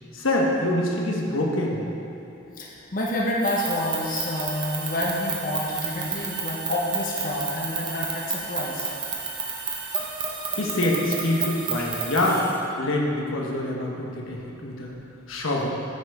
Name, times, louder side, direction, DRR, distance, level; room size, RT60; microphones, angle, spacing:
voice 1, 0.1-1.8 10.6-12.5 12.8-14.9 15.3-15.7, left 1 dB, 80° left, -2 dB, 1.2 m, -25 dB
voice 2, 2.4-8.8 13.5-13.7, left 1 dB, 45° left, -3 dB, 0.8 m, -28 dB
sound 1, 3.4-12.6, right 5 dB, 25° right, 0.9 m, -31 dB
9.5 x 4.7 x 4.8 m, 2.7 s
head